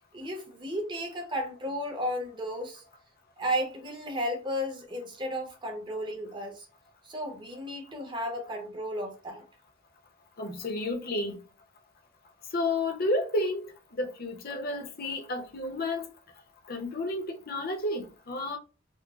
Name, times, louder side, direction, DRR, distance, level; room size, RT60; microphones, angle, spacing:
voice 1, 0.1-2.8 3.4-6.7 7.0-9.4, equal, 25° right, 0.8 m, -34 dB
voice 2, 10.4-11.4 12.5-16.1 16.6-18.6, left 2 dB, 50° left, 0.7 m, -31 dB
3.8 x 2.0 x 2.3 m
head